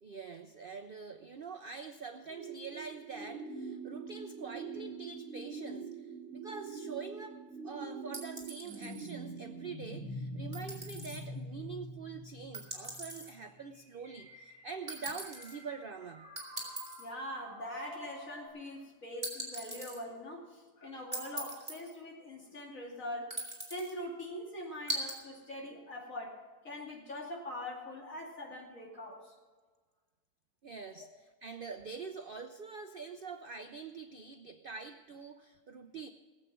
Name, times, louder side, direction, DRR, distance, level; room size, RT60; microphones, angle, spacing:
voice 1, 0.0-16.3 30.6-36.1, right 5 dB, 60° right, 8 dB, 0.5 m, -45 dB
sound 1, 2.3-18.5, right 2 dB, 45° right, 3.9 m, -45 dB
sound 2, 8.1-9.1 10.5-11.2 12.5-13.3 14.9-15.5 16.4-17.1 19.2-20.0 21.1-22.0 23.3-23.9 24.9-25.2, right 2 dB, 20° right, 3.7 m, -41 dB
voice 2, 17.0-29.3, left 1 dB, 55° left, -1 dB, 3.0 m, -43 dB
19.0 x 8.2 x 6.0 m, 1.5 s
omnidirectional pair, 1.7 m